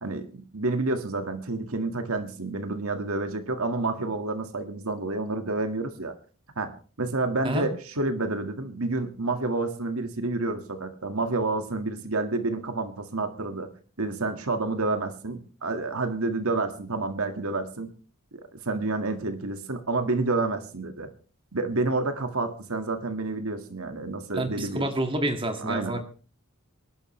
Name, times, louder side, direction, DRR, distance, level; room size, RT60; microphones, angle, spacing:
voice 1, 0.0-6.1 6.6-6.7 7.0-13.7 14.0-17.9 18.5-21.1 21.5-24.9 25.6-26.0, right 3 dB, 80° right, 7 dB, 1.9 m, -29 dB
voice 2, 24.3-26.0, right 1 dB, 25° right, 5 dB, 2.1 m, -28 dB
26.5 x 11.5 x 3.3 m, 0.38 s
head